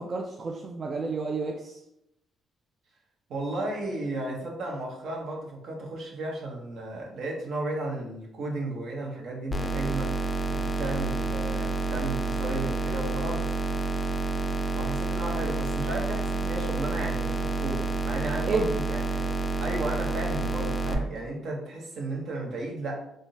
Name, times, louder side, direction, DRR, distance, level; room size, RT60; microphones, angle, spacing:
voice 1, 0.0-1.8 18.5-18.7, right 3 dB, 45° right, 1 dB, 0.4 m, -30 dB
voice 2, 3.3-10.1 10.5-13.5 14.7-19.3 19.6-23.0, right 2 dB, 70° right, -1 dB, 0.9 m, -34 dB
sound 1, 9.5-20.9, right 3 dB, 30° left, 0.4 m, -29 dB
3.5 x 2.5 x 2.7 m, 0.79 s
cardioid pair, 90°, 0 cm